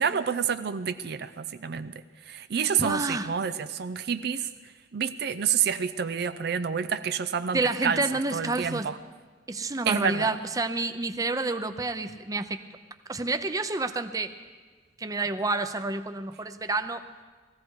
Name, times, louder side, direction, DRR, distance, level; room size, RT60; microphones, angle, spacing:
voice 1, 0.0-1.9 2.3-4.5 4.9-8.0 8.3-8.9 9.9-10.3, right 7 dB, 60° right, 11 dB, 0.5 m, -28 dB
voice 2, 2.8-3.3 7.5-8.9 9.5-12.6 13.1-14.3 15.0-17.0, right 3 dB, 20° right, 9 dB, 0.6 m, -29 dB
19.0 x 15.0 x 4.7 m, 1.4 s
head